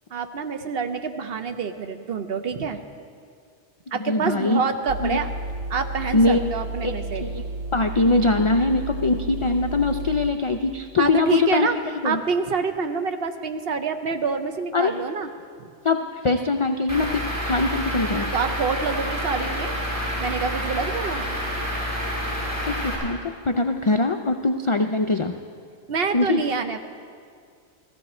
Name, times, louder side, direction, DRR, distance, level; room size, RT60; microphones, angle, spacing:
voice 1, 0.1-2.8 3.9-5.3 5.7-7.3 11.0-11.8 12.0-15.3 18.3-19.8 20.2-21.3 25.9-26.8, right 5 dB, 60° right, 7 dB, 0.9 m, -26 dB
voice 2, 3.9-4.6 5.0-5.2 6.1-6.5 6.8-6.9 7.2-7.4 7.7-11.7 11.9-12.2 14.7-14.9 15.8-18.3 22.7-23.2 23.4-25.3 26.1-26.4, left 3 dB, 50° left, 5 dB, 0.3 m, -22 dB
sound 1, 4.9-10.3, right 2 dB, 90° right, 1.1 m, -32 dB
Truck / Idling, 16.9-22.9, equal, 30° right, 5.0 m, -28 dB
15.0 x 15.0 x 4.3 m, 2.2 s
omnidirectional pair, 1.2 m